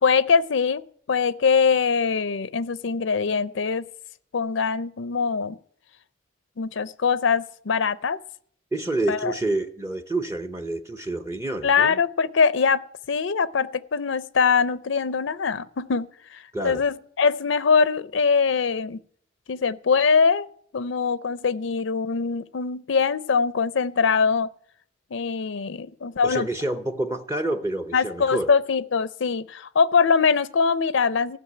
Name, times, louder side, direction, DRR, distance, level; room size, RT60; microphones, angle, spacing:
voice 1, 0.0-3.9 4.3-5.6 6.6-8.2 9.1-9.3 11.6-19.0 19.5-20.5 20.7-24.5 25.1-26.5 27.9-31.4, left 5 dB, 70° left, 0.5 m, -22 dB
voice 2, 8.7-12.0 16.5-16.8 26.2-28.5, right 2 dB, 15° right, 0.7 m, -28 dB
16.0 x 6.2 x 9.7 m
head